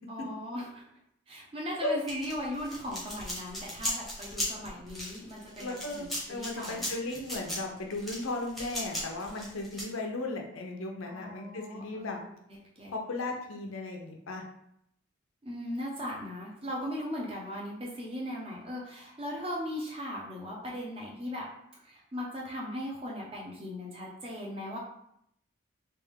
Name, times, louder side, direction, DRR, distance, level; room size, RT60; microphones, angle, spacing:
voice 1, 0.1-0.9 1.3-6.9 11.1-12.3 12.8-12.9 15.4-21.5 21.8-24.8, equal, 25° right, -3 dB, 0.8 m, -38 dB
sound 1, 2.1-9.8, left 1 dB, ahead, 0.9 m, -37 dB
voice 2, 5.6-12.2 12.9-14.4, left 2 dB, 85° left, 2 dB, 0.7 m, -36 dB
3.3 x 2.6 x 3.5 m, 0.74 s
head